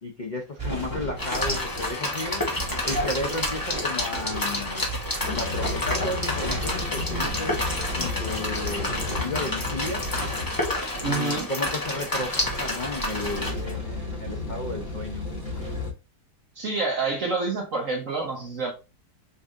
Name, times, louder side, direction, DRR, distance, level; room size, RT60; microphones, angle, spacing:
voice 1, 0.0-2.4 2.8-4.9 5.2-7.6 8.0-10.1 11.0-15.3, left 2 dB, 75° left, 0.4 m, -33 dB
sound 1, 0.6-15.8, right 2 dB, 15° right, 2.0 m, -36 dB
sound 2, 1.2-13.5, left 1 dB, 20° left, 0.6 m, -29 dB
sound 3, 5.2-15.9, left 4 dB, 40° left, 1.8 m, -34 dB
voice 2, 11.0-11.5 16.6-18.7, right 3 dB, 50° right, 1.3 m, -27 dB
5.4 x 3.4 x 2.5 m
omnidirectional pair, 1.9 m